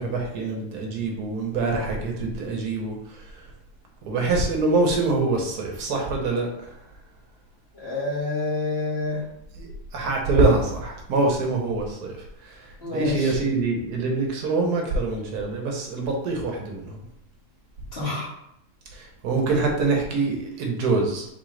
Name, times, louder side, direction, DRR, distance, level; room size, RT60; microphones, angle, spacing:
voice 1, 0.0-2.9 4.1-6.5 9.6-12.2 12.4-12.6 12.9-17.0 18.9-21.3, right 3 dB, 80° right, 1 dB, 1.4 m, -24 dB
voice 2, 7.7-9.3 12.8-13.4 17.9-18.3, left 3 dB, 40° left, -8 dB, 2.1 m, -28 dB
4.5 x 3.6 x 3.2 m, 0.78 s
omnidirectional pair, 1.7 m